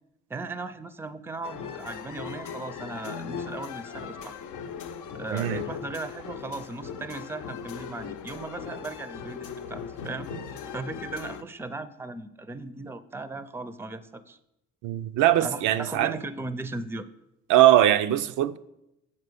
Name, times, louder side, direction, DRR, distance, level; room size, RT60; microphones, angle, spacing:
voice 1, 0.3-4.4 5.1-14.4 15.4-17.1, right 3 dB, 10° right, 0.4 m, -37 dB
sound 1, 1.4-11.4, left 6 dB, 80° left, 0.6 m, -38 dB
voice 2, 5.3-5.7 14.8-16.1 17.5-18.6, right 13 dB, 85° right, 0.5 m, -21 dB
7.3 x 4.1 x 6.7 m
cardioid pair, 90°, 30 cm